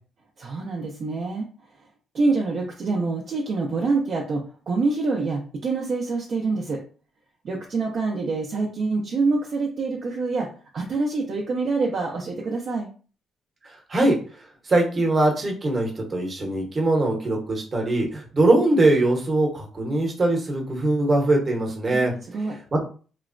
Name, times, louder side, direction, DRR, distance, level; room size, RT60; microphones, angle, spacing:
voice 1, 0.4-1.5 1.8-1.9 2.1-6.8 7.4-10.5 10.7-12.9 21.9-22.6, right 3 dB, 55° right, -1 dB, 0.5 m, -26 dB
voice 2, 14.7-22.1 22.7-22.8, right 2 dB, 35° right, 0 dB, 0.9 m, -21 dB
2.9 x 2.0 x 2.5 m, 0.38 s
cardioid pair, 90°, 0 cm